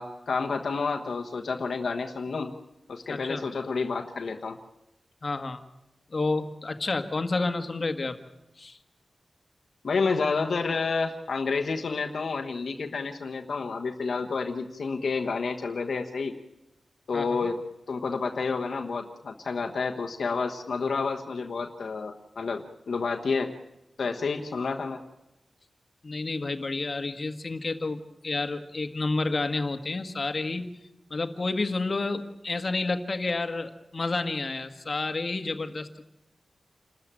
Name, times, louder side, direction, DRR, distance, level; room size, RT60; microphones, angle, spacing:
voice 1, 0.0-2.5 2.9-4.6 9.8-16.3 17.1-17.6 17.9-23.5 24.0-25.0, left 4 dB, 80° left, 3 dB, 1.2 m, -29 dB
voice 2, 3.1-3.4 5.2-5.6 6.1-8.2 8.6-8.8 17.1-17.3 26.0-30.8 31.1-36.0, left 3 dB, 45° left, 8 dB, 1.7 m, -30 dB
28.5 x 13.5 x 9.0 m, 0.92 s
wide cardioid pair, 110°, 0 cm